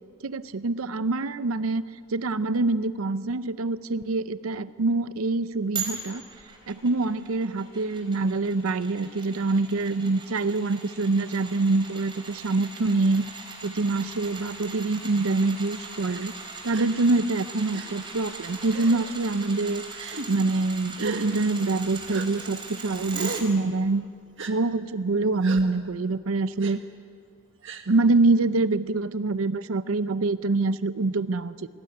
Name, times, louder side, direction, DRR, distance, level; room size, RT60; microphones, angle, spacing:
voice 1, 0.2-1.8 2.1-6.2 6.7-13.2 13.6-16.3 16.6-19.8 20.3-24.0 24.5-26.8 27.9-31.7, right 3 dB, 80° right, 14 dB, 0.7 m, -25 dB
sound 1, 5.7-23.4 23.8-23.9, right 4 dB, 25° right, 4.2 m, -40 dB
Gasp, 16.7-16.9 17.7-17.9 18.7-19.1 19.9-20.3 21.0-21.3 22.1-22.3 23.1-23.5 24.4-24.5 25.4-25.6 26.6-26.7 27.6-27.9, right 4 dB, 60° right, 1.6 m, -36 dB
26.0 x 19.0 x 9.6 m, 2.3 s
head